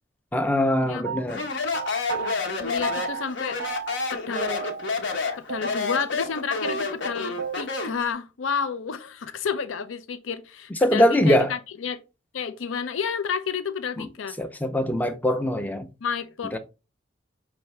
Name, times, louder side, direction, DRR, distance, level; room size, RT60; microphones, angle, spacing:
voice 1, 0.3-1.4 10.8-11.5 14.0-14.1 14.4-15.9 16.5-16.6, left 1 dB, 10° left, 0.4 m, -22 dB
sound 1, 1.0-2.4 2.8-3.3 3.6-4.1 4.4-5.2 5.5-5.6 5.9-6.0 6.2-6.4 6.6-7.6, right 7 dB, 90° right, 0.4 m, -33 dB
Speech, 1.3-8.0, left 4 dB, 70° left, 1.0 m, -29 dB
voice 2, 2.6-3.6 4.1-4.6 5.4-12.0 12.3-14.4 16.0-16.6, left 6 dB, 85° left, 0.5 m, -30 dB
5.7 x 2.6 x 3.2 m
head